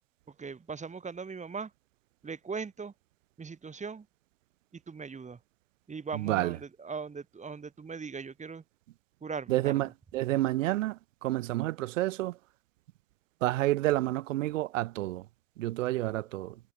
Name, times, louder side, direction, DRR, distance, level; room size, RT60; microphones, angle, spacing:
voice 1, 0.4-1.7 2.2-2.9 3.4-4.1 4.7-5.4 5.9-8.6 9.2-9.9, right 5 dB, 20° right, 3.8 m, -39 dB
voice 2, 6.1-6.6 9.5-12.4 13.4-15.3 15.6-16.6, right 16 dB, 75° right, 0.7 m, -29 dB
hypercardioid pair, 95°, 39 cm